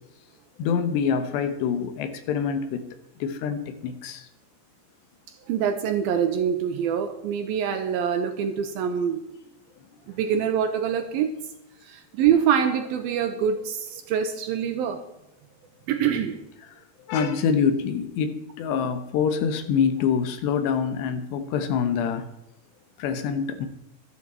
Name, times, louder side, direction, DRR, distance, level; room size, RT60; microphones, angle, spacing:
voice 1, 0.6-2.8 3.2-4.3 17.1-22.3 23.0-23.7, left 6 dB, 80° left, 9 dB, 3.3 m, -25 dB
voice 2, 5.5-9.2 10.1-11.3 11.9-15.0 15.9-16.4, right 8 dB, 75° right, 8 dB, 2.3 m, -25 dB
12.5 x 12.5 x 4.3 m, 0.91 s
omnidirectional pair, 4.9 m